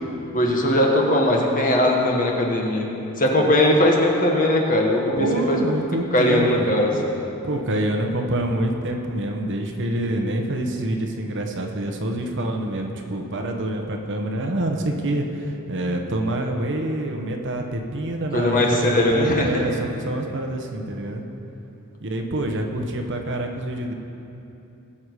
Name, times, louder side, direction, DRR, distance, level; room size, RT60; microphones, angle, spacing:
voice 1, 0.3-2.8 3.2-5.6 6.1-6.9 18.3-19.5, left 1 dB, 40° left, 0 dB, 1.6 m, -19 dB
voice 2, 5.2-6.7 7.4-21.2 22.0-23.9, right 1 dB, 55° right, 3 dB, 1.1 m, -26 dB
20.0 x 7.2 x 4.8 m, 2.9 s
head